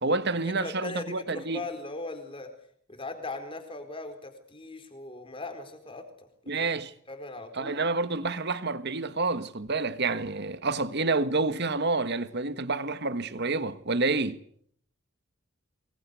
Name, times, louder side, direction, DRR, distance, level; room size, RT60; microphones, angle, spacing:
voice 1, 0.0-1.6 6.5-6.9 7.6-14.4, right 3 dB, 55° right, 1.5 m, -28 dB
voice 2, 0.6-2.5 2.9-6.1 6.5-6.7 7.1-7.8, left 2 dB, 25° left, 4.4 m, -39 dB
25.0 x 22.0 x 8.3 m
head